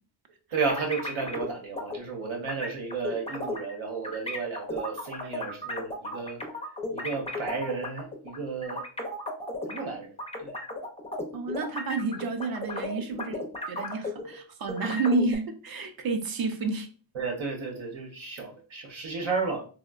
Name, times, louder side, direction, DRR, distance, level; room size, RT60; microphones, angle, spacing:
voice 1, 0.5-6.4 6.9-8.8 9.7-10.1 10.4-10.6 17.1-19.7, right 4 dB, 90° right, 0.9 m, -33 dB
sound 1, 0.7-1.5 1.8-2.0 2.5-3.7 4.0-9.8 10.2-14.4 14.7-15.4, left 2 dB, 15° left, 0.3 m, -35 dB
voice 2, 11.3-13.4 13.7-16.9, right 3 dB, 50° right, 0.5 m, -30 dB
3.5 x 2.1 x 2.3 m
wide cardioid pair, 160°, 47 cm